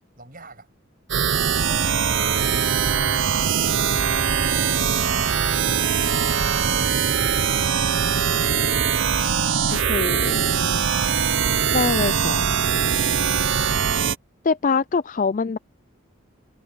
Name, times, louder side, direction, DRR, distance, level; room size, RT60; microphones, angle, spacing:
voice 1, 0.2-0.7 1.7-2.7 6.3-10.2 10.7-13.0, right 2 dB, 40° right, 7.5 m, -48 dB
sound 1, 1.1-14.1, right 7 dB, 65° right, 0.8 m, -21 dB
sound 2, 1.7-7.7, right 2 dB, 15° right, 5.6 m, -44 dB
voice 2, 9.9-10.4 11.7-12.4 14.4-15.6, left 4 dB, 40° left, 0.4 m, -23 dB
head